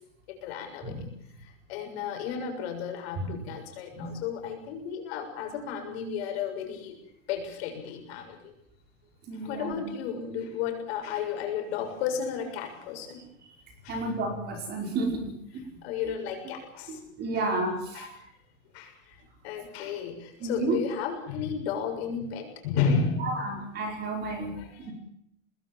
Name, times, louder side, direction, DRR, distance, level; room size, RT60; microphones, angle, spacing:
voice 1, 0.3-1.0 1.7-7.0 7.3-8.5 9.3-13.3 13.8-14.0 15.8-17.0 17.3-17.4 17.9-18.2 18.7-19.2 19.4-23.6 24.6-24.9, left 6 dB, 50° left, 4 dB, 7.0 m, -33 dB
voice 2, 9.3-9.8 13.9-15.3 16.9-18.1 20.4-20.8 23.2-24.5 24.8-24.9, right 2 dB, 25° right, 3 dB, 5.3 m, -31 dB
25.5 x 20.5 x 7.5 m, 0.73 s
supercardioid pair, 160°, 39 cm